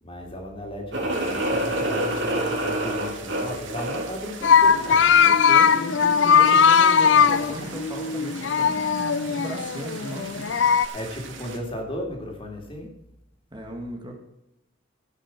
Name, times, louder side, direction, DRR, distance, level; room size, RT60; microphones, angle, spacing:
voice 1, 0.0-5.0 7.1-7.7 10.9-12.9, left 1 dB, 30° left, 1 dB, 3.0 m, -35 dB
sound 1, 0.9-4.2, right 1 dB, 70° right, 4.4 m, -27 dB
sound 2, 1.1-11.6, right 5 dB, 85° right, 2.3 m, -42 dB
sound 3, 4.4-10.9, left 6 dB, 75° left, 0.5 m, -19 dB
voice 2, 5.2-8.9 9.3-10.5 13.5-14.1, right 1 dB, 25° right, 1 dB, 1.9 m, -36 dB
16.0 x 6.5 x 6.0 m, 0.84 s
head